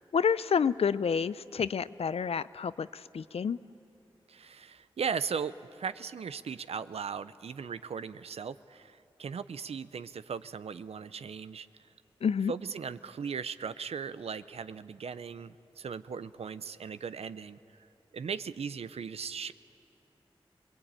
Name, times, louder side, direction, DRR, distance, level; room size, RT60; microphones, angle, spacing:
voice 1, 0.1-3.6 12.2-12.5, left 6 dB, 75° left, 16 dB, 0.5 m, -29 dB
voice 2, 4.3-11.9 12.5-17.6 18.1-19.5, right 6 dB, 85° right, 14 dB, 0.6 m, -38 dB
25.5 x 20.5 x 8.8 m, 2.8 s
cardioid pair, 50°, 10 cm